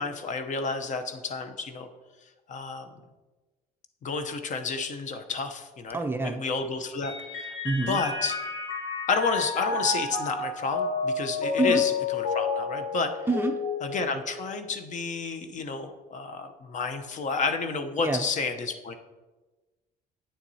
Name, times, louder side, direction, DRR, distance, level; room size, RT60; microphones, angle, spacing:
voice 1, 0.0-1.9 2.5-2.9 4.0-7.6 7.9-8.4 9.1-13.1 13.8-18.9, left 4 dB, 45° left, 7 dB, 0.7 m, -31 dB
voice 2, 5.9-6.4 7.6-8.0 11.6-11.8 13.3-13.5 18.0-18.2, right 3 dB, 15° right, 5 dB, 0.4 m, -26 dB
Mallet percussion, 7.0-14.8, left 5 dB, 85° left, 1.4 m, -30 dB
8.7 x 7.2 x 2.7 m, 1.2 s
cardioid pair, 110°, 17 cm